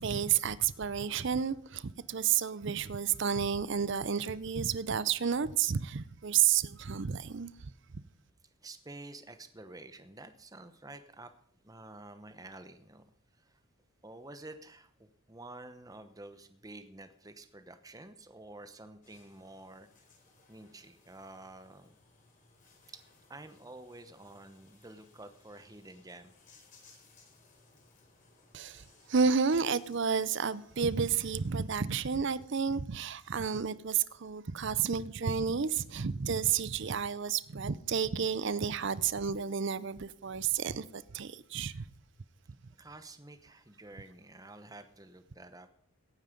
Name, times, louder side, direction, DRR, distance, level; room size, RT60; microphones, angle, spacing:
voice 1, 0.0-7.5 7.9-8.0 28.5-41.9, right 7 dB, 55° right, 0.6 m, -31 dB
voice 2, 8.6-11.3 11.6-13.0 13.3-13.6 14.0-19.9 20.5-21.9 22.9-23.0 23.3-26.3 29.0-29.1 42.8-45.7, right 2 dB, 15° right, 0.9 m, -50 dB
sound 1, 19.0-31.6, left 3 dB, 35° left, 4.6 m, -63 dB
17.0 x 9.4 x 5.2 m
head